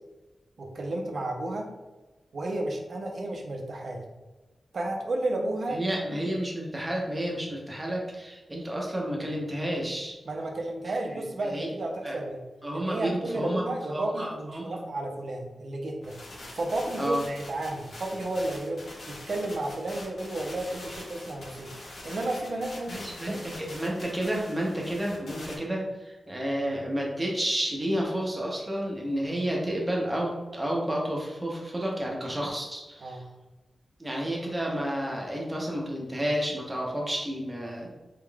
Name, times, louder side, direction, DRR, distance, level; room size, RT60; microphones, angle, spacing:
voice 1, 0.6-1.7 2.3-4.0 4.7-5.8 6.1-6.2 10.3-12.4 12.7-16.2 16.5-21.7 22.0-23.4 23.7-23.9 33.0-33.3, right 2 dB, 55° right, 2 dB, 0.6 m, -32 dB
voice 2, 5.7-10.2 11.0-11.7 12.0-12.2 12.6-14.8 17.0-17.3 22.9-33.2 34.0-37.9, right 1 dB, 15° right, -2 dB, 0.8 m, -31 dB
sound 1, 16.0-25.6, left 1 dB, 70° left, 0.8 m, -44 dB
3.6 x 3.5 x 2.3 m, 1.2 s
wide cardioid pair, 120°, 0 cm